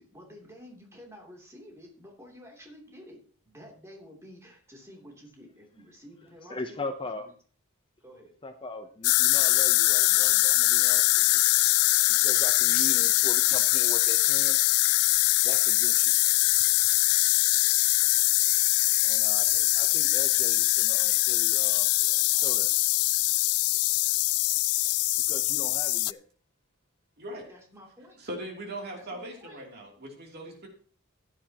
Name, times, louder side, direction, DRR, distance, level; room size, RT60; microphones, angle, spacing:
voice 1, 0.0-6.8 8.0-8.3 18.0-18.6 22.0-22.5 22.9-23.3 27.5-28.2 28.9-29.6, equal, 15° right, 0 dB, 2.9 m, -51 dB
voice 2, 6.5-7.3 8.4-11.4 12.2-14.6 15.4-16.1 19.0-21.9 22.4-22.7 25.3-26.2, left 2 dB, 25° left, 7 dB, 0.7 m, -40 dB
sound 1, 9.0-26.1, left 19 dB, 90° left, 0.4 m, -23 dB
voice 3, 27.2-27.5 28.2-30.7, right 1 dB, 45° right, 1 dB, 2.9 m, -39 dB
15.0 x 9.9 x 2.9 m, 0.42 s
head